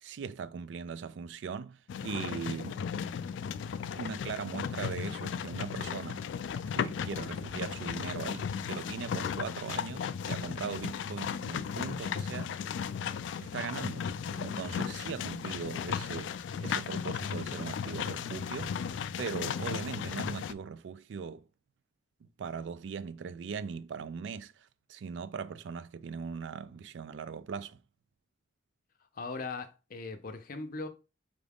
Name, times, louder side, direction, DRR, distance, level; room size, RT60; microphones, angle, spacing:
voice 1, 0.0-2.8 4.0-6.3 6.7-12.5 13.4-18.8 19.2-21.4 22.2-27.8, right 6 dB, 80° right, 0.3 m, -40 dB
sound 1, 1.9-20.5, left 7 dB, 90° left, 0.3 m, -35 dB
voice 2, 29.2-30.9, left 3 dB, 50° left, 0.6 m, -39 dB
5.0 x 2.4 x 3.4 m
head